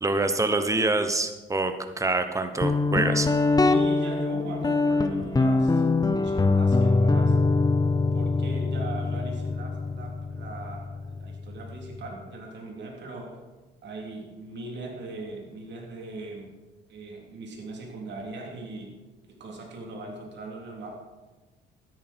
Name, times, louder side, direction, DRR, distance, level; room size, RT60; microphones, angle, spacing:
voice 1, 0.0-3.3, right 2 dB, 15° right, 8 dB, 1.1 m, -26 dB
Guitar, 2.6-12.1, left 3 dB, 20° left, 0.8 m, -24 dB
voice 2, 3.6-7.4 8.1-13.4 13.8-16.5 16.9-18.9 19.4-20.9, right 2 dB, 60° right, 0 dB, 3.3 m, -39 dB
12.5 x 10.5 x 4.5 m, 1.2 s
cardioid pair, 90°, 20 cm